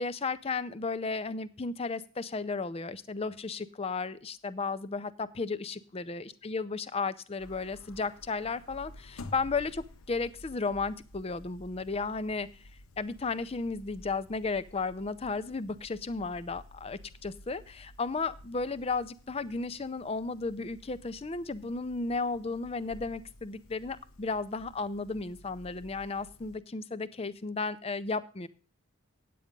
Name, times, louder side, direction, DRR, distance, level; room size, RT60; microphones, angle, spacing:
voice 1, 0.0-12.5 13.0-28.5, left 4 dB, 30° left, 14 dB, 0.5 m, -34 dB
sound 1, 7.4-26.6, left 1 dB, 90° left, 0.8 m, -52 dB
9.3 x 8.5 x 5.2 m, 0.38 s
head